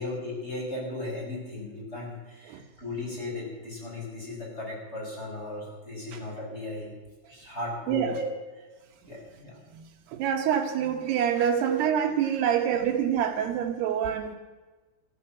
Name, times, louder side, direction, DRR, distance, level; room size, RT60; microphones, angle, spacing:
voice 1, 0.0-6.9 7.3-8.7 9.0-9.6 11.4-11.8, left 2 dB, 15° left, 5.7 m, -36 dB
voice 2, 10.1-14.4, right 9 dB, 75° right, 3.0 m, -26 dB
14.5 x 13.5 x 7.3 m
omnidirectional pair, 4.9 m